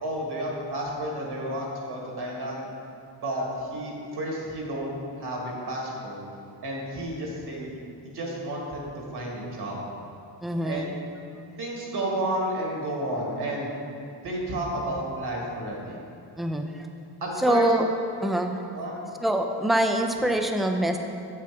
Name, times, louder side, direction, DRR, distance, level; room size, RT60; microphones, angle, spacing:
voice 1, 0.0-2.7 3.2-6.2 6.6-7.7 8.0-9.8 10.6-10.8 11.6-13.7 14.2-16.0 17.2-17.7 18.7-18.9, right 1 dB, 65° right, -2 dB, 1.9 m, -31 dB
voice 2, 10.4-10.9 16.4-16.9 17.4-17.9 18.2-18.6 19.2-21.0, right 1 dB, ahead, 4 dB, 0.3 m, -24 dB
8.1 x 7.6 x 3.5 m, 2.5 s
wide cardioid pair, 155°, 42 cm